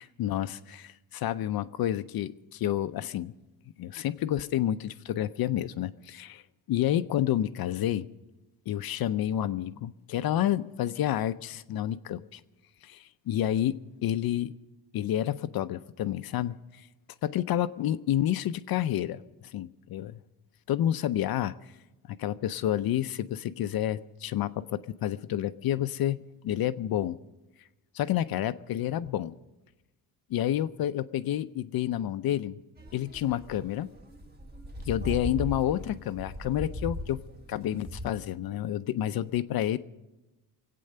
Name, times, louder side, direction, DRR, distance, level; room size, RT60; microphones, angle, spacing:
voice 1, 0.0-3.3 3.8-6.4 6.7-8.1 8.7-12.4 12.8-14.5 14.9-16.9 17.2-19.2 19.5-20.2 20.7-21.5 22.1-27.2 27.9-29.3 30.3-32.6 32.9-33.9 34.9-37.2 37.5-39.8, left 12 dB, 60° left, 11 dB, 0.6 m, -29 dB
sound 1, 32.8-38.1, equal, 25° right, 1.4 m, -38 dB
23.0 x 8.5 x 6.7 m, 1.0 s
cardioid pair, 125°, 41 cm